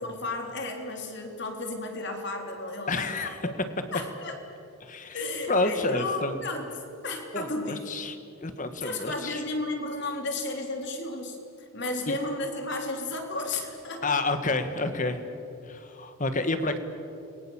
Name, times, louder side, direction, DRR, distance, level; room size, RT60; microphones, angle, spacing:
voice 1, 0.0-3.6 3.9-4.4 5.1-6.7 7.0-7.8 8.8-14.2, left 2 dB, 50° left, 3 dB, 3.7 m, -33 dB
voice 2, 2.9-3.4 4.8-5.2 5.5-6.4 7.3-8.2 8.4-9.4 12.1-12.2 14.0-15.2 15.6-16.8, left 2 dB, 35° left, 9 dB, 1.7 m, -29 dB
29.5 x 22.5 x 7.3 m, 2.8 s
head